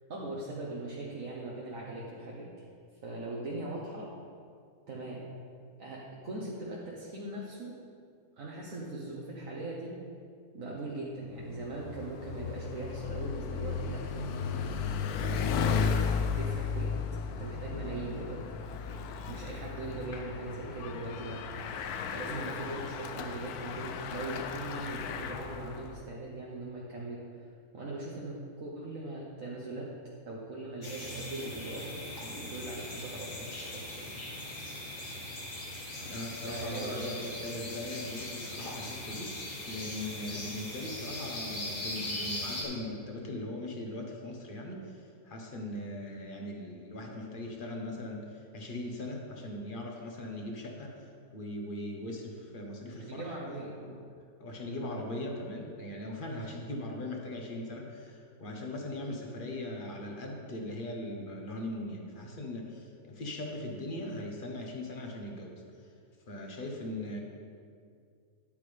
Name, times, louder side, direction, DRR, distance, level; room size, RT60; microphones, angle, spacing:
voice 1, 0.1-2.7 3.0-4.1 4.9-5.2 5.8-7.8 8.4-9.9 10.5-14.8 15.2-15.7 16.3-17.0 17.4-18.4 18.9-19.0 19.3-21.4 22.1-27.2 27.7-29.9 30.2-34.1 36.4-37.3 53.0-53.8, right 2 dB, 60° right, -4 dB, 1.4 m, -40 dB
Bicycle, 11.4-26.0, left 6 dB, 80° left, 1.1 m, -35 dB
sound 1, 30.8-42.6, left 1 dB, 60° left, 2.0 m, -40 dB
voice 2, 36.0-53.4 53.8-54.0 54.4-65.6 66.3-67.2, left 1 dB, 35° left, 1 dB, 1.2 m, -40 dB
10.5 x 8.5 x 3.4 m, 2.3 s
omnidirectional pair, 1.6 m